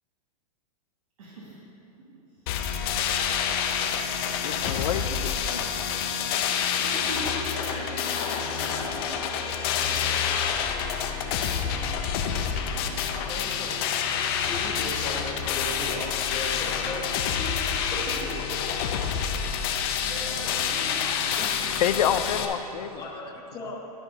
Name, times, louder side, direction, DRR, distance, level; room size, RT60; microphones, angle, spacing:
voice 1, 1.2-1.5 2.3-2.7 6.4-10.4 12.6-13.1 18.7-18.9 19.6-22.1 22.5-23.1, right 1 dB, 65° right, -6 dB, 1.8 m, -41 dB
sound 1, 2.5-22.5, left 7 dB, 40° left, 0.6 m, -28 dB
voice 2, 4.4-5.8 21.8-23.0, left 9 dB, 75° left, 11 dB, 0.5 m, -28 dB
voice 3, 13.1-14.0 14.5-18.3 21.4-21.5 23.0-23.8, left 2 dB, 15° left, -1 dB, 1.1 m, -37 dB
12.5 x 4.4 x 5.2 m, 2.9 s
supercardioid pair, 155°, 20 cm